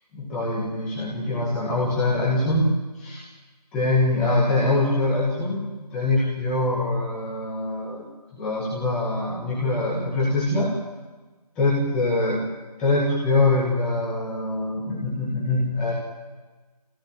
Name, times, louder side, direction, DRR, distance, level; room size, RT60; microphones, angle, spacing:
voice 1, 0.2-2.7 2.9-3.2 3.7-8.0 8.3-10.7 11.6-12.4 12.8-15.9, left 2 dB, 5° left, -8 dB, 2.1 m, -24 dB
26.0 x 17.0 x 9.1 m, 1.3 s
figure-of-eight pair, 170°, 21 cm